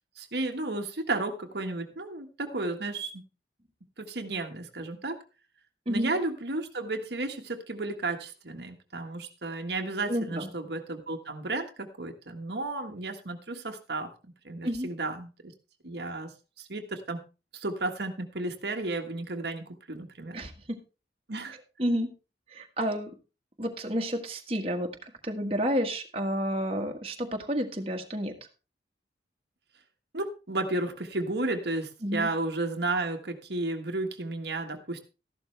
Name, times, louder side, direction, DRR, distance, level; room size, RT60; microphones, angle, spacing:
voice 1, 0.2-3.2 4.0-5.2 5.9-14.1 14.4-15.5 15.8-16.3 16.6-17.2 17.5-20.4 21.3-21.6 30.1-35.0, right 2 dB, 70° right, 4 dB, 1.5 m, -33 dB
voice 2, 10.1-10.5 14.6-14.9 20.3-20.8 21.8-22.1 22.5-23.1 23.6-28.3 32.0-32.3, equal, 30° right, 2 dB, 1.6 m, -30 dB
13.5 x 11.5 x 3.3 m, 0.31 s
head